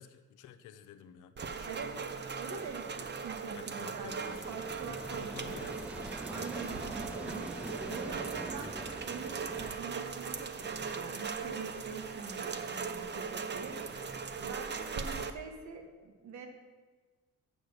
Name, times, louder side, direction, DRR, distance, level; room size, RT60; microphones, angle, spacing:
voice 1, 0.0-2.0 3.6-4.5 5.1-5.9 7.2-7.5 14.9-15.2, left 9 dB, 85° left, 9 dB, 0.7 m, -52 dB
Rain, 1.4-15.3, right 5 dB, 35° right, 0.7 m, -39 dB
voice 2, 2.4-5.9 6.3-16.5, right 5 dB, 70° right, 5 dB, 1.6 m, -45 dB
sound 1, 4.2-9.7, right 1 dB, 5° right, 0.4 m, -44 dB
8.0 x 6.4 x 6.4 m, 1.3 s
cardioid pair, 90°, 30 cm